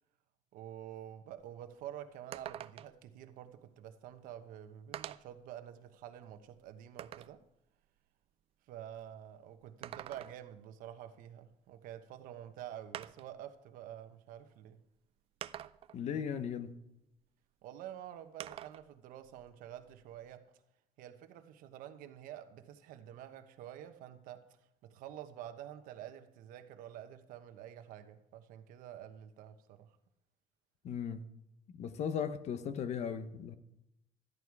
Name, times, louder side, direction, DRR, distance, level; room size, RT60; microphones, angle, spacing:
voice 1, 0.5-7.4 8.7-14.8 17.6-20.5 21.0-24.5 24.8-29.9, right 11 dB, 80° right, 1.1 m, -48 dB
sound 1, 1.4-1.5 1.8-1.9 2.3-3.1 4.1-4.2 4.9-5.4 6.0-7.4 9.6-10.6 12.1-12.2 12.9-13.4 14.4-14.5 15.4-16.0 18.4-18.9 19.2-20.3, right 11 dB, 45° right, 0.4 m, -46 dB
voice 2, 15.9-16.7 30.8-31.2 31.7-33.6, left 7 dB, 55° left, 1.0 m, -37 dB
13.5 x 11.0 x 4.7 m
cardioid pair, 150°, 14 cm